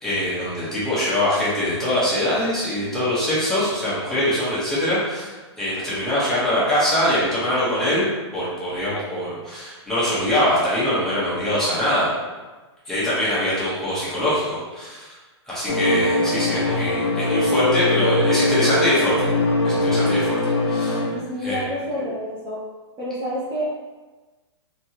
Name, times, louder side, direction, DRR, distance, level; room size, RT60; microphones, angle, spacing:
voice 1, 0.0-12.1 12.9-15.1 15.5-19.3 19.6-21.0 21.4-21.6, left 1 dB, 5° left, -11 dB, 1.0 m, -23 dB
sound 1, 15.7-21.1, left 2 dB, 85° left, 0.7 m, -21 dB
voice 2, 20.9-22.6 23.0-23.6, equal, 20° right, -9 dB, 0.7 m, -29 dB
3.4 x 2.3 x 2.8 m, 1.3 s
hypercardioid pair, 145°, 15 cm